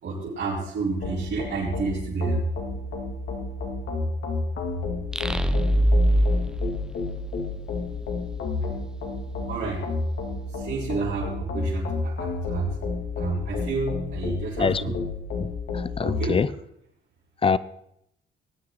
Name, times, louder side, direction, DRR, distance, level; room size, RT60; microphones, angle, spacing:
voice 1, 0.0-2.4 9.5-9.9 10.5-12.8 13.2-14.9 16.0-16.4, right 4 dB, 65° right, -8 dB, 4.2 m, -30 dB
sound 1, 1.0-16.3, left 3 dB, 75° left, 2.5 m, -31 dB
sound 2, 5.1-7.8, right 1 dB, 5° right, 0.8 m, -23 dB
voice 2, 14.6-15.0 15.4-16.5 17.4-17.6, left 5 dB, 25° left, 18 dB, 0.6 m, -25 dB
19.5 x 9.5 x 4.0 m, 0.77 s
cardioid pair, 90°, 20 cm